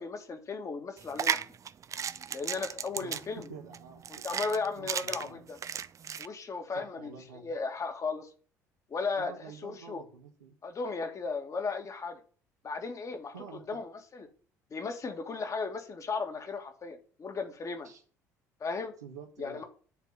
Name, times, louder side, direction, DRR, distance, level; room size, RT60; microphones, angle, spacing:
voice 1, 0.0-1.4 2.3-3.5 4.2-5.6 6.2-8.3 8.9-10.0 10.6-12.2 12.6-14.3 14.7-17.9 18.6-18.9 19.4-19.6, left 4 dB, 35° left, 2.1 m, -36 dB
sound 1, 1.0-6.3, right 8 dB, 35° right, 0.6 m, -35 dB
voice 2, 3.0-4.0 4.8-5.4 6.7-7.5 9.2-10.5 13.3-13.8 17.8-18.0 19.0-19.6, right 5 dB, 85° right, 1.3 m, -48 dB
10.5 x 4.6 x 7.1 m
figure-of-eight pair, 55°, 9 cm